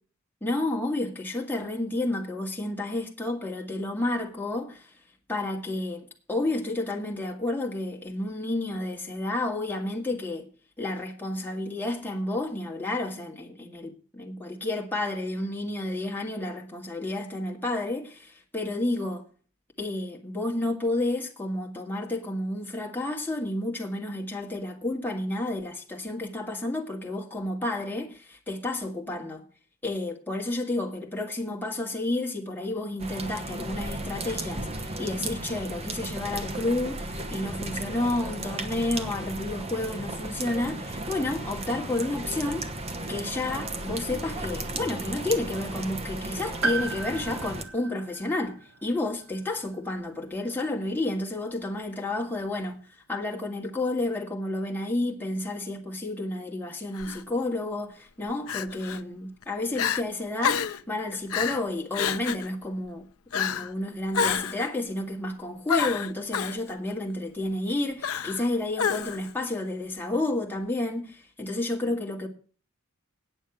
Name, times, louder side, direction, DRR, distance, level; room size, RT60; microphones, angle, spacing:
voice 1, 0.4-4.9 5.3-10.5 10.8-19.2 19.8-29.5 29.8-42.7 43.1-48.6 48.8-52.8 53.1-63.1 63.3-72.3, left 2 dB, 10° left, 2.1 m, -31 dB
sound 1, 33.0-47.6, right 2 dB, 30° right, 1.2 m, -35 dB
Piano, 46.6-50.5 50.8-50.9 52.0-52.1, right 2 dB, 90° right, 1.7 m, -35 dB
Crying sobbing, 57.0-57.2 58.5-59.0 59.4-59.5 59.7-60.0 60.4-60.8 61.3-61.6 61.9-62.5 63.3-63.7 64.1-64.7 65.7-66.6 68.0-68.4 68.8-69.3, left 7 dB, 80° left, 0.6 m, -28 dB
9.4 x 7.2 x 8.6 m
head